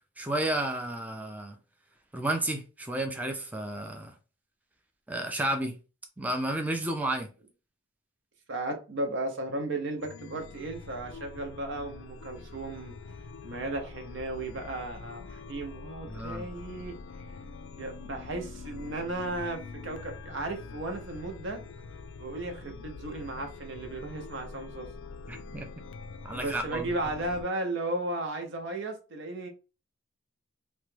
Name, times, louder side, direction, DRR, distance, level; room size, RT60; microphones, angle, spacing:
voice 1, 0.2-1.5 2.1-4.1 5.1-5.7 6.2-7.3 16.1-16.5 25.3-25.7 26.2-26.9, right 1 dB, 10° right, 0.4 m, -31 dB
voice 2, 8.5-12.9 13.4-17.0 17.8-21.6 22.2-24.9 26.3-29.5, right 2 dB, 60° right, 0.6 m, -35 dB
Chime, 10.0-27.4, left 4 dB, 65° left, 0.3 m, -45 dB
3.0 x 2.2 x 3.1 m
head